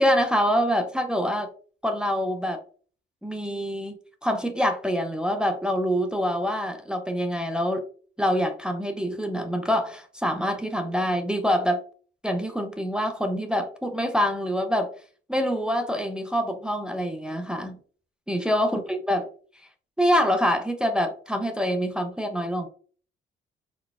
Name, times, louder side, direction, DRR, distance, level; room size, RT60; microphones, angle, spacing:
voice 1, 0.0-1.5 1.8-2.6 3.2-4.0 4.2-7.8 8.2-11.8 12.2-14.9 15.3-17.8 18.3-19.3 20.0-22.7, equal, 5° right, 5 dB, 0.4 m, -25 dB
4.0 x 2.1 x 2.3 m, 0.43 s
cardioid pair, 90°, 20 cm